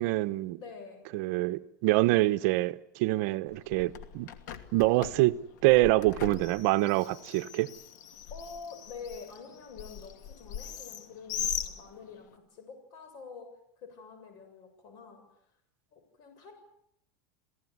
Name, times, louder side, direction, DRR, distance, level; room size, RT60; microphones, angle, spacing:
voice 1, 0.0-0.6 1.1-4.3 4.7-5.4 5.6-7.7, right 19 dB, 60° right, 1.0 m, -25 dB
voice 2, 0.6-1.0 4.8-4.9 8.3-15.2 15.9-16.5, left 5 dB, 45° left, 7.4 m, -47 dB
Bird, 3.5-12.4, left 9 dB, 80° left, 2.6 m, -41 dB
28.5 x 17.5 x 9.6 m
supercardioid pair, 155°, 10 cm